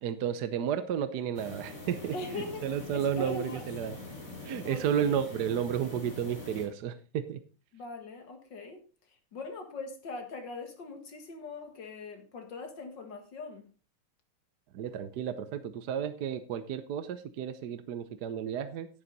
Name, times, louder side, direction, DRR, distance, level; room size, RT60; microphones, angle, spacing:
voice 1, 0.0-4.0 4.4-7.4 14.7-18.9, right 8 dB, 65° right, 1.1 m, -32 dB
sound 1, 1.3-6.7, left 2 dB, 35° left, 4.0 m, -44 dB
voice 2, 2.1-3.6 4.6-5.3 7.7-8.8 9.3-13.6, left 3 dB, 55° left, 2.4 m, -41 dB
10.5 x 9.8 x 4.0 m
omnidirectional pair, 2.4 m